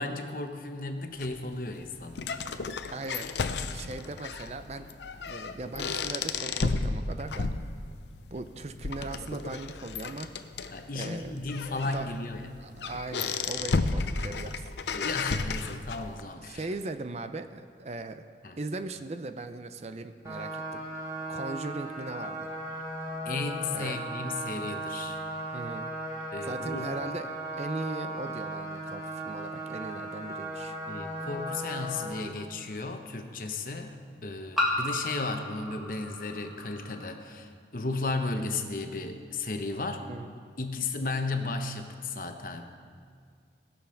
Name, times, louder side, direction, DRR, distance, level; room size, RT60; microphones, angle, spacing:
voice 1, 0.0-2.2 10.7-12.6 14.9-16.7 18.4-18.6 23.2-25.2 26.3-26.9 30.9-40.0 40.6-42.6, left 3 dB, 50° left, 5 dB, 1.0 m, -34 dB
sound 1, 1.2-16.2, left 4 dB, 80° left, 0.6 m, -34 dB
voice 2, 2.9-3.3 3.7-4.9 5.3-7.5 8.3-10.3 10.9-11.3 11.6-12.1 12.6-14.7 16.5-18.2 18.6-20.8 21.3-22.5 23.7-24.0 25.5-25.9 26.4-30.8 40.0-40.3, right 2 dB, 35° right, 9 dB, 0.5 m, -39 dB
sound 2, 20.2-32.1, right 1 dB, 20° right, 2.8 m, -37 dB
sound 3, 30.6-30.7 32.4-32.5 34.6-37.0, left 1 dB, ahead, 1.7 m, -33 dB
19.0 x 7.0 x 5.7 m, 2.1 s
head